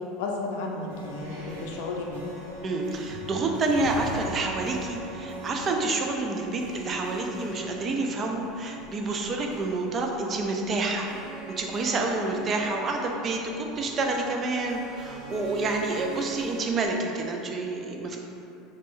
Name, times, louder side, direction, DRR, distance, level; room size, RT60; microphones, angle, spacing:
voice 1, 0.2-2.3, left 3 dB, 75° left, 0 dB, 0.5 m, -33 dB
sound 1, 0.8-16.9, right 1 dB, 90° right, 0.8 m, -41 dB
voice 2, 2.6-11.1 11.6-18.2, right 3 dB, 25° right, 2 dB, 0.3 m, -28 dB
3.1 x 2.5 x 3.6 m, 2.7 s
cardioid pair, 165°, 0 cm